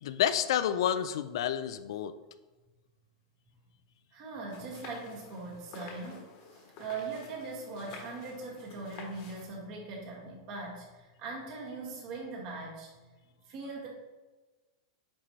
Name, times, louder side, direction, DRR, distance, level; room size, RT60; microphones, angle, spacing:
voice 1, 0.0-2.1, left 10 dB, 65° left, 12 dB, 0.4 m, -29 dB
voice 2, 4.1-12.9 13.5-13.9, right 3 dB, 35° right, -3 dB, 1.9 m, -41 dB
sound 1, 4.5-9.5, left 4 dB, 40° left, 1.3 m, -50 dB
9.0 x 4.4 x 3.1 m, 1.2 s
supercardioid pair, 165°, 3 cm